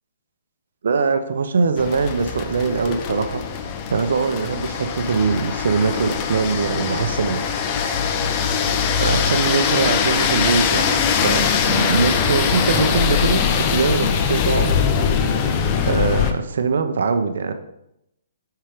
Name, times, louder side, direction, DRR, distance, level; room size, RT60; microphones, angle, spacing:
voice 1, 0.8-3.4 3.9-8.1 9.0-10.8 11.2-14.7 15.9-17.5, right 5 dB, 70° right, 9 dB, 0.7 m, -22 dB
sound 1, 1.8-16.3, left 6 dB, 30° left, 0.6 m, -21 dB
5.8 x 4.5 x 5.0 m, 0.81 s
hypercardioid pair, 155°, 0 cm